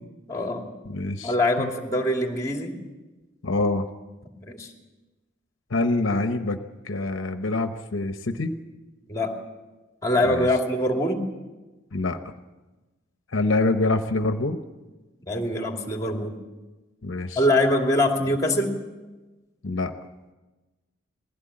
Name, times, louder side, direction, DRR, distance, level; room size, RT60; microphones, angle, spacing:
voice 1, 0.3-0.7 1.2-2.7 4.5-4.7 9.1-9.4 10.0-11.2 15.3-16.4 17.3-18.8, left 1 dB, 15° left, 2 dB, 2.6 m, -23 dB
voice 2, 0.9-1.7 3.4-3.9 5.7-6.6 6.8-8.5 10.2-10.5 11.9-12.2 13.3-14.6 17.0-17.4 19.6-19.9, left 2 dB, 70° left, 8 dB, 1.0 m, -25 dB
20.5 x 16.0 x 8.6 m, 1.2 s
head